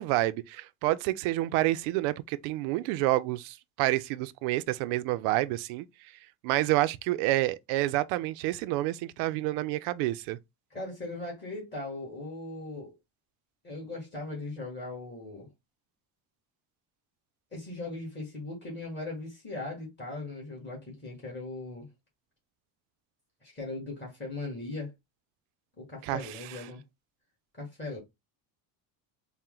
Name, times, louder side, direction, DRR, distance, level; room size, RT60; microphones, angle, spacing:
voice 1, 0.0-5.8 6.4-10.4 26.0-26.4, right 16 dB, 85° right, 0.5 m, -28 dB
voice 2, 10.7-12.9 13.6-15.5 17.5-21.9 23.4-24.9 25.8-26.8 27.5-28.0, left 2 dB, 20° left, 1.6 m, -39 dB
4.3 x 2.1 x 3.7 m
cardioid pair, 140°, 48 cm